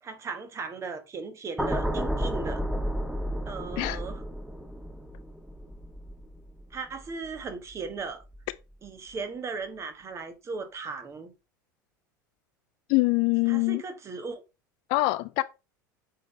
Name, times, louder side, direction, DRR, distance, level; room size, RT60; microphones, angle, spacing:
voice 1, 0.0-2.6 3.5-4.2 6.7-8.2 8.8-11.3 13.5-14.4, right 4 dB, 25° right, 1.3 m, -37 dB
sound 1, 1.6-7.9 8.2-8.5, equal, 5° right, 0.7 m, -33 dB
voice 2, 12.9-13.8 14.9-15.4, left 22 dB, 50° left, 0.4 m, -24 dB
8.1 x 4.0 x 3.2 m
figure-of-eight pair, 75°, 11 cm